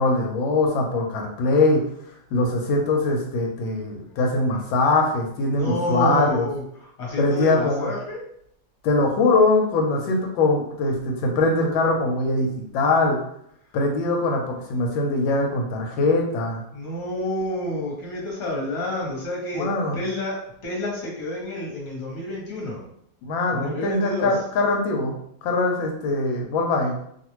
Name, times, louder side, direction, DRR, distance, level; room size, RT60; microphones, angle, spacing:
voice 1, 0.0-1.8 2.3-6.5 7.2-7.9 8.8-13.2 13.7-16.6 19.5-20.0 23.2-25.2 25.4-27.0, left 2 dB, 90° left, 1 dB, 1.4 m, -22 dB
voice 2, 5.5-8.2 16.7-20.4 20.6-22.8 23.5-24.3, left 1 dB, 45° left, -4 dB, 1.2 m, -29 dB
2.9 x 2.4 x 3.0 m, 0.71 s
omnidirectional pair, 2.0 m